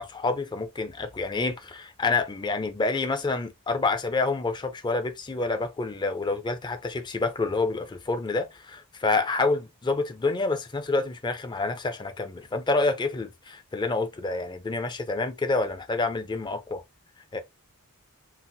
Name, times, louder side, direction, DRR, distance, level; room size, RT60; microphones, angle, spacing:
voice 1, 0.0-16.8 17.3-17.4, left 3 dB, 20° left, 0.4 m, -28 dB
3.9 x 2.0 x 2.6 m
head